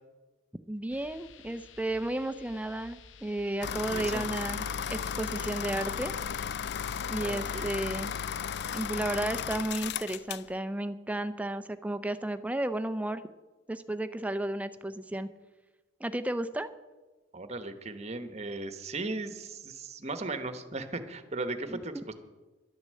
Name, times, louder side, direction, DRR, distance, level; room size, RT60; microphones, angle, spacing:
voice 1, 0.7-6.1 7.1-8.1 8.7-13.2 13.7-15.3 16.0-16.7 21.7-21.8, right 1 dB, 5° right, 11 dB, 0.5 m, -33 dB
sound 1, 0.9-6.5, left 5 dB, 80° left, 0.7 m, -53 dB
sound 2, 3.6-10.5, left 7 dB, 60° left, 0.4 m, -35 dB
voice 2, 3.9-4.2 7.2-7.7 17.3-22.1, right 2 dB, 35° right, 9 dB, 1.0 m, -37 dB
11.5 x 9.6 x 7.6 m, 1.2 s
head